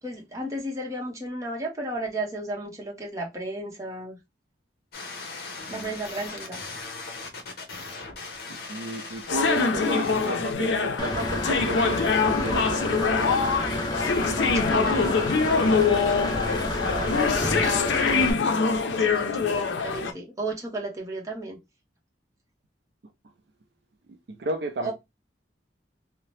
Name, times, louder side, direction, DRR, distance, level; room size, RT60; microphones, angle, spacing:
voice 1, 0.0-4.2 5.7-6.6 14.4-15.2 18.1-18.3 19.0-21.6 24.8-24.9, right 2 dB, 20° right, 0.8 m, -34 dB
sound 1, 4.9-10.5, left 3 dB, 55° left, 0.7 m, -39 dB
voice 2, 8.5-13.4 16.8-18.1 24.3-24.9, right 2 dB, 65° right, 0.4 m, -34 dB
sound 2, 9.3-20.1, left 5 dB, 85° left, 0.5 m, -24 dB
Engine / Mechanisms, 11.0-18.3, left 1 dB, 20° left, 0.5 m, -30 dB
2.7 x 2.0 x 3.0 m
head